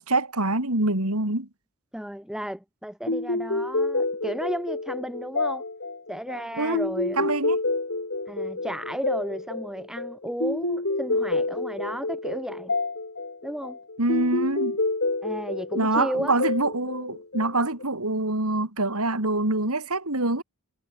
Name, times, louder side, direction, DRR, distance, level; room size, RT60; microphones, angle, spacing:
voice 1, 0.0-1.5 6.6-6.8 7.2-7.6 14.0-14.8 15.7-20.4, right 2 dB, 75° right, 4.8 m, -25 dB
voice 2, 1.9-5.6 6.1-7.2 8.3-12.7 13.4-13.8 15.2-16.3, equal, 5° right, 1.8 m, -33 dB
sound 1, 3.1-17.8, left 2 dB, 55° left, 4.1 m, -29 dB
head